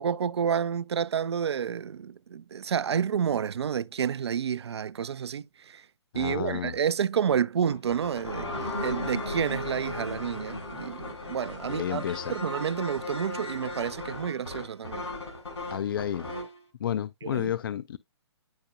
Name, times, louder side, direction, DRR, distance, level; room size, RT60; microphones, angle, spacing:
voice 1, 0.0-5.9 6.1-12.0 12.3-15.1 17.2-17.5, right 7 dB, 70° right, 0.4 m, -30 dB
voice 2, 6.1-6.7 11.7-12.4 15.7-16.3 16.8-18.0, left 10 dB, 50° left, 0.4 m, -31 dB
sound 1, 7.7-16.6, left 2 dB, 75° left, 3.2 m, -36 dB
10.5 x 4.3 x 2.5 m
figure-of-eight pair, 125°, 14 cm